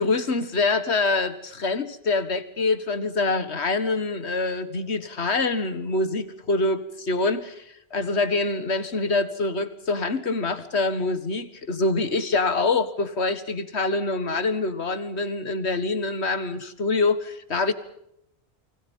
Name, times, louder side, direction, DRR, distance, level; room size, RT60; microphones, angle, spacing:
voice 1, 0.0-6.8 7.1-7.6 7.9-17.7, left 3 dB, 85° left, 12 dB, 2.0 m, -25 dB
sound 1, 4.0-7.5 8.2-9.5, left 2 dB, 60° left, 6.7 m, -54 dB
29.5 x 24.5 x 5.5 m, 0.77 s
omnidirectional pair, 1.1 m